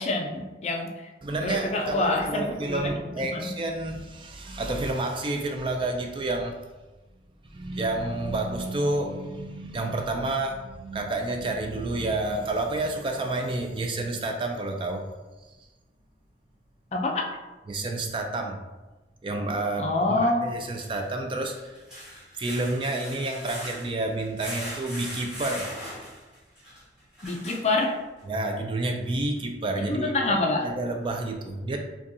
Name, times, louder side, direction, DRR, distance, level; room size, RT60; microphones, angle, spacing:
voice 1, 0.0-1.1 1.4-3.5 16.9-17.3 19.8-20.5 27.2-28.0 29.8-30.7, left 2 dB, 35° left, 1 dB, 0.4 m, -26 dB
voice 2, 1.2-6.6 7.5-15.1 17.7-18.6 19.2-21.6 22.3-25.7 28.3-30.1 30.6-31.8, right 2 dB, 30° right, 3 dB, 0.3 m, -29 dB
sound 1, 18.1-18.2 20.6-28.2 28.8-28.9 29.4-29.5, equal, 5° right, 1.4 m, -40 dB
5.2 x 2.3 x 2.6 m, 1.2 s
head